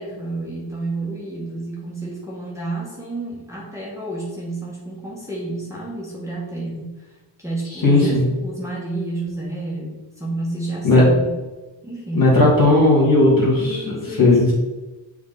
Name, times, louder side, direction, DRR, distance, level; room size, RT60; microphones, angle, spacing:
voice 1, 0.0-11.3 11.8-12.3 13.6-14.5, right 2 dB, 5° right, -6 dB, 1.6 m, -30 dB
voice 2, 7.8-8.2 10.8-11.0 12.1-13.8 14.2-14.5, left 2 dB, 50° left, -5 dB, 2.2 m, -15 dB
7.1 x 3.8 x 4.0 m, 1.1 s
cardioid pair, 80°, 44 cm